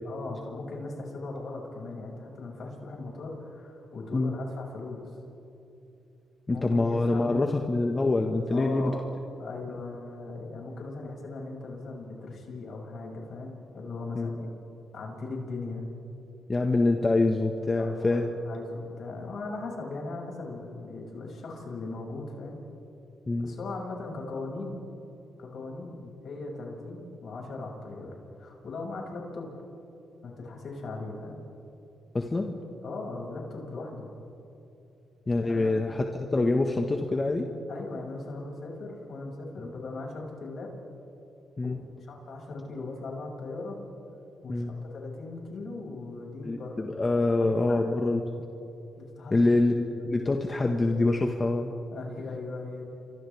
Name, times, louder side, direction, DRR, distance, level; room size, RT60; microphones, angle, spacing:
voice 1, 0.0-5.1 6.5-7.5 8.5-9.0 9.4-14.5 14.9-15.9 17.7-22.6 23.4-24.8 25.4-26.0 26.2-29.5 30.2-31.4 32.8-34.1 35.4-35.8 37.7-40.7 41.6-41.7 42.1-43.8 44.4-46.9 47.7-47.8 48.9-49.3 51.9-52.8, left 3 dB, 65° left, -1 dB, 6.8 m, -38 dB
voice 2, 6.5-8.9 9.7-9.8 14.1-14.4 16.5-18.3 23.3-23.6 32.1-32.6 35.3-37.5 41.6-41.8 44.5-44.7 46.4-48.2 49.3-51.7, left 2 dB, 30° left, 3 dB, 1.7 m, -25 dB
29.5 x 25.0 x 3.6 m, 2.9 s
supercardioid pair, 60°, 0 cm